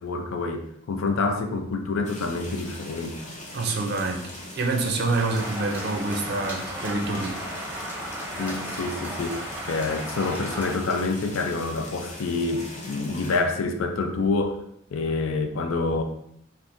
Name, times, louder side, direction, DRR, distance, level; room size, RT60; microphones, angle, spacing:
voice 1, 0.0-3.2 8.4-14.6 14.9-16.0, left 3 dB, 80° left, 5 dB, 0.4 m, -27 dB
sound 1, 2.0-13.4, left 1 dB, 35° left, 0.7 m, -40 dB
voice 2, 3.5-7.4, right 3 dB, 50° right, 2 dB, 0.5 m, -27 dB
sound 2, 5.1-10.8, equal, 10° right, 0.6 m, -35 dB
3.4 x 2.5 x 2.6 m, 0.74 s
head